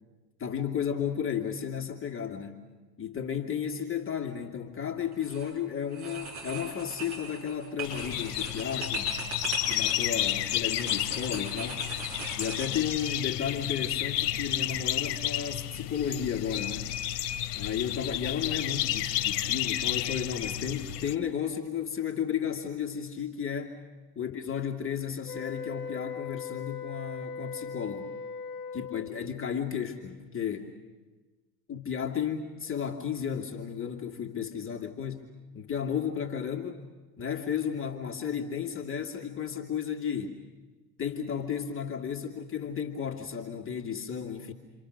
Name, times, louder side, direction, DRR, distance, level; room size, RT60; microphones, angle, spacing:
voice 1, 0.4-2.7 3.0-9.2 9.7-11.8 12.4-16.9 17.5-23.8 24.2-28.1 28.7-30.8 31.7-35.3 35.5-36.8 37.2-40.4 41.0-44.5, left 8 dB, 25° left, 2 dB, 2.3 m, -33 dB
sound 1, 5.1-5.5 5.9-13.1, right 4 dB, 50° right, 7.4 m, -40 dB
sound 2, 7.8-21.1, left 13 dB, 65° left, 1.4 m, -31 dB
sound 3, 25.2-29.2, left 5 dB, 45° left, 2.2 m, -39 dB
29.0 x 25.5 x 6.6 m, 1.3 s
hypercardioid pair, 85°, 50 cm